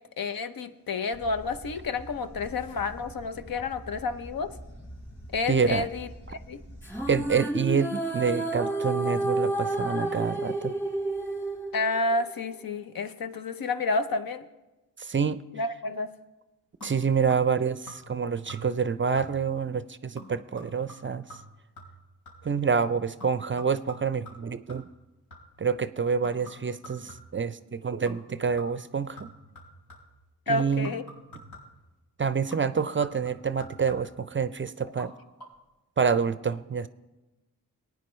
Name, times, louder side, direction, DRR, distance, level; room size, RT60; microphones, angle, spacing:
voice 1, 0.2-4.5 5.3-6.1 6.5-6.6 11.7-14.4 15.5-16.1 30.5-31.0, left 3 dB, 60° left, 9 dB, 0.8 m, -30 dB
sound 1, 1.1-7.4, equal, 40° left, 3.1 m, -45 dB
voice 2, 5.5-5.9 7.1-10.7 15.0-15.4 16.8-21.3 22.4-24.8 25.6-29.3 30.5-30.9 32.2-35.1 36.0-36.9, right 6 dB, 30° right, 14 dB, 0.5 m, -27 dB
sound 2, 6.8-12.3, right 2 dB, 5° left, 2.5 m, -30 dB
sound 3, 16.8-17.6 17.9-18.2 18.5-18.9 19.2-19.6 20.2-22.6 23.2-25.7 26.2-27.5 28.1-28.3 28.6-30.2 30.8-31.9 32.5-34.3 34.9-35.1 35.4-35.5, equal, 80° left, 4.3 m, -48 dB
18.5 x 9.4 x 3.1 m, 1.1 s
supercardioid pair, 45°, 39 cm